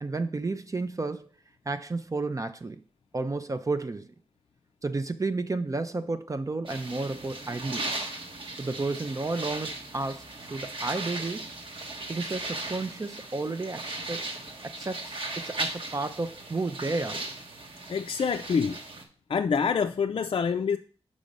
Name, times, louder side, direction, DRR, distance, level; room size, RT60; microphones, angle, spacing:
voice 1, 0.0-1.3 1.7-2.8 3.1-4.1 4.8-7.9 8.6-10.2 10.5-11.5 12.1-14.2 14.6-17.2, right 3 dB, 30° right, 9 dB, 0.5 m, -32 dB
sound 1, 6.7-19.0, right 2 dB, 55° right, 1.2 m, -37 dB
voice 2, 17.9-18.8 19.3-20.8, left 6 dB, 55° left, 6 dB, 0.4 m, -26 dB
5.1 x 5.0 x 5.2 m, 0.40 s
wide cardioid pair, 75°, 11 cm